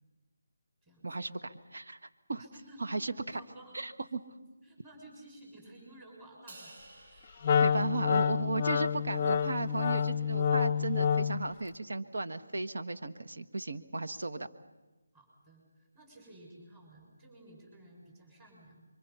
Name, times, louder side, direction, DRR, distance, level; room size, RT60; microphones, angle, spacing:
voice 1, 1.0-2.0 2.3-2.4 2.8-3.1 3.7-4.2 7.6-14.5, right 3 dB, 70° right, 7 dB, 1.6 m, -35 dB
voice 2, 2.4-3.0 3.3-3.8 4.5-6.7 7.1-7.3 7.5-8.0 15.1-18.9, right 1 dB, 15° right, 0 dB, 6.6 m, -54 dB
Crash cymbal, 6.5-8.9, right 2 dB, 45° right, 7.9 m, -55 dB
Wind instrument woodwind instrument, 7.4-11.5, left 7 dB, 30° left, 0.7 m, -28 dB
27.5 x 24.0 x 5.7 m, 1.2 s
figure-of-eight pair, 165°, 0 cm